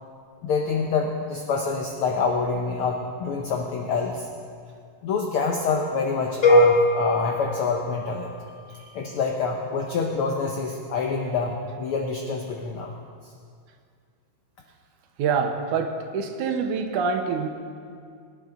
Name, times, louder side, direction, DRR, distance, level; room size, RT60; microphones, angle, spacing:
voice 1, 0.4-4.3 5.0-8.3 8.9-12.9, left 4 dB, 70° left, 2 dB, 1.4 m, -26 dB
sound 1, 6.4-8.5, left 1 dB, 50° left, 0.9 m, -21 dB
voice 2, 15.2-17.5, right 5 dB, 80° right, 5 dB, 2.5 m, -25 dB
24.0 x 10.5 x 3.9 m, 2.2 s
omnidirectional pair, 3.5 m